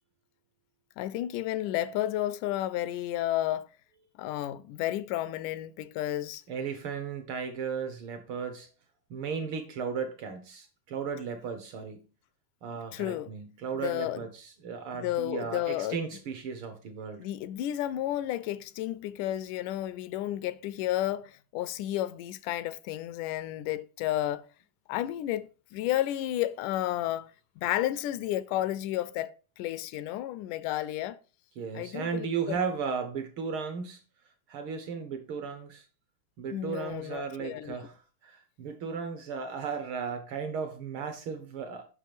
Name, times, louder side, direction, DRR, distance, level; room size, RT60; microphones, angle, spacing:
voice 1, 1.0-3.7 4.2-6.4 12.9-13.3 13.8-14.3 14.9-16.0 17.2-24.4 24.9-27.3 27.6-31.2 31.7-32.6 36.5-37.8, left 13 dB, 85° left, 2.1 m, -32 dB
voice 2, 6.5-8.7 9.1-12.0 12.6-17.3 31.6-34.0 34.5-35.8 36.4-41.9, right 6 dB, 75° right, 1.2 m, -35 dB
7.5 x 6.0 x 5.0 m
omnidirectional pair, 3.6 m